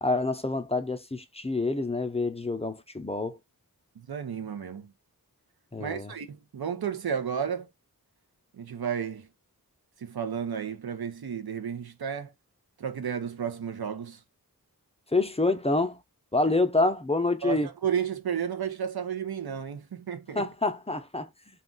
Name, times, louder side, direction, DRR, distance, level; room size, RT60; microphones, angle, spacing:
voice 1, 0.0-3.4 5.7-6.1 15.1-16.0 16.3-17.7 20.3-21.3, left 2 dB, 15° left, 0.5 m, -27 dB
voice 2, 4.0-4.9 5.8-7.7 8.6-9.3 10.0-12.3 12.8-14.2 17.4-20.5, right 8 dB, 90° right, 0.6 m, -32 dB
2.4 x 2.3 x 3.7 m
wide cardioid pair, 45°, 36 cm